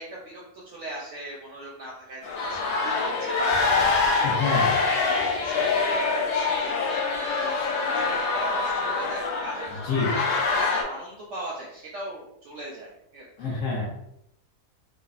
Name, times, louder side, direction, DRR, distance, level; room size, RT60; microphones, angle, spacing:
voice 1, 0.0-13.3, right 1 dB, 65° right, -4 dB, 0.7 m, -39 dB
sound 1, 2.2-10.8, left 4 dB, 80° left, 1.2 m, -25 dB
voice 2, 4.2-4.7 9.8-10.1 13.4-13.9, left 4 dB, 65° left, -4 dB, 0.8 m, -26 dB
3.3 x 2.0 x 2.4 m, 0.77 s
omnidirectional pair, 1.8 m